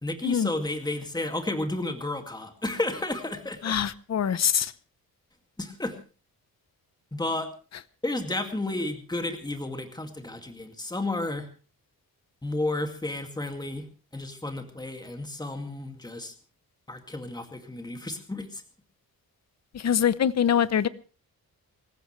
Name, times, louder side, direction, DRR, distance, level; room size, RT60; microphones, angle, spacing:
voice 1, 0.0-3.8 5.6-5.9 7.1-7.5 8.0-11.5 12.4-13.9 14.1-16.3 16.9-18.6, left 2 dB, 10° left, 6 dB, 2.2 m, -32 dB
voice 2, 3.6-4.7 19.7-20.9, left 8 dB, 45° left, 16 dB, 0.8 m, -24 dB
26.0 x 15.0 x 3.2 m, 0.35 s
wide cardioid pair, 140°, 37 cm